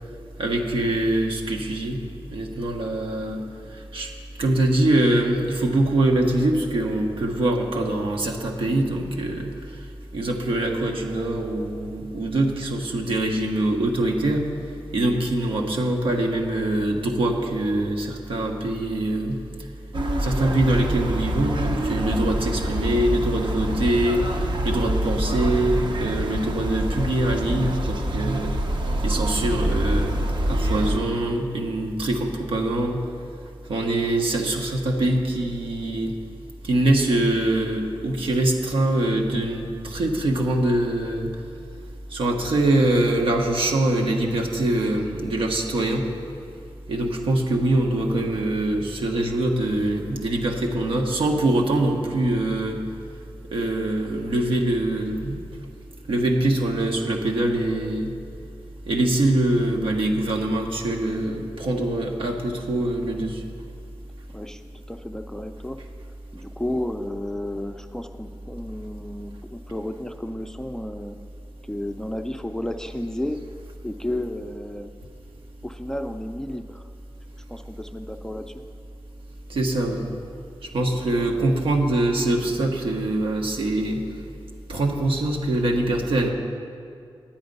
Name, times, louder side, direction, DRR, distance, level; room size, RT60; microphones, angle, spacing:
voice 1, 0.4-2.0 2.3-3.4 3.9-4.1 4.4-9.5 10.1-14.4 14.9-19.4 20.2-28.6 29.0-30.2 30.4-33.0 33.7-36.1 36.6-41.3 42.1-46.1 46.9-52.8 53.5-55.4 56.1-58.1 58.9-63.4 79.5-80.1 80.7-84.0 84.7-86.3, right 1 dB, 85° right, 1 dB, 1.1 m, -23 dB
sound 1, 19.9-31.0, right 1 dB, 60° right, 0.9 m, -26 dB
voice 2, 64.9-65.8 66.3-71.2 71.6-73.4 73.8-74.9 75.6-76.9 77.5-78.6 80.9-81.2, left 1 dB, 5° left, 6 dB, 0.4 m, -32 dB
10.5 x 8.7 x 5.3 m, 2.4 s
wide cardioid pair, 105°, 9 cm